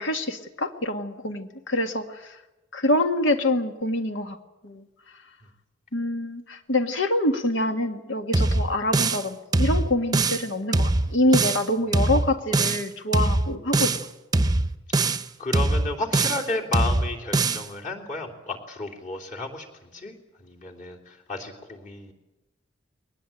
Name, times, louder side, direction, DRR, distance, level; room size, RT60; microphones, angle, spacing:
voice 1, 0.0-2.4 2.7-4.4 4.6-4.8 5.9-14.0, left 1 dB, 80° left, 7 dB, 1.8 m, -26 dB
sound 1, 8.3-9.3 9.5-10.5 10.7-11.7 11.9-12.9 13.1-14.1 14.3-15.3 15.5-16.5 16.7-17.7, right 2 dB, 20° right, 0.8 m, -22 dB
voice 2, 15.4-22.1, left 2 dB, 40° left, 0 dB, 3.4 m, -32 dB
22.0 x 19.5 x 9.0 m, 1.0 s
head